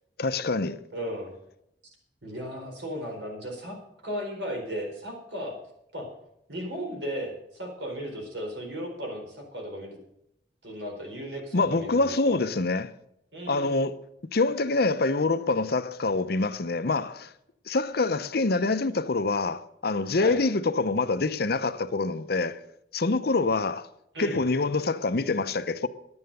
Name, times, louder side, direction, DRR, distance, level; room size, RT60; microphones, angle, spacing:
voice 1, 0.2-0.8 11.5-12.9 13.5-13.9 14.3-17.3 17.7-22.6 22.9-23.9 24.2-25.9, left 3 dB, 60° left, 0.7 m, -25 dB
voice 2, 0.9-1.3 2.2-3.8 4.0-5.6 5.9-6.1 6.5-10.0 10.6-12.4 13.3-13.7 20.2-20.4 24.1-24.4, equal, 80° right, 4.5 m, -35 dB
11.5 x 9.7 x 6.8 m
head